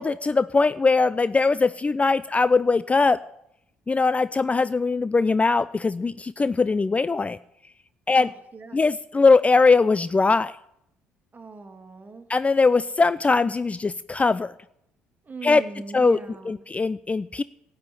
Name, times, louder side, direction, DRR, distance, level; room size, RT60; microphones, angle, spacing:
voice 1, 0.0-3.2 3.9-7.4 8.1-8.3 8.7-10.5 12.3-14.5 15.4-15.6 15.9-16.2 16.5-17.4, left 4 dB, 25° left, 16 dB, 0.4 m, -21 dB
voice 2, 8.1-8.8 11.3-12.3 15.2-16.6, right 3 dB, 30° right, 6 dB, 2.1 m, -40 dB
17.0 x 5.7 x 8.5 m, 0.78 s
hypercardioid pair, 50°, 6 cm